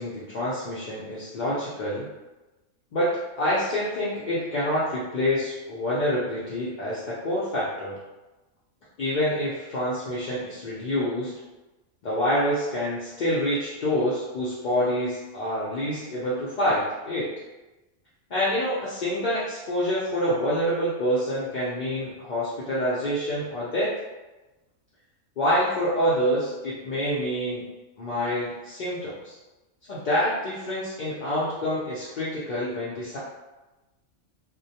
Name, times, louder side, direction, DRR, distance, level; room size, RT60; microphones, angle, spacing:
voice 1, 0.0-2.1 2.9-3.1 3.4-8.0 9.0-11.3 12.0-17.4 18.3-23.9 25.4-27.7 28.0-29.3 29.9-33.2, equal, 60° left, -9 dB, 0.5 m, -27 dB
2.2 x 2.1 x 2.7 m, 1.1 s
omnidirectional pair, 1.3 m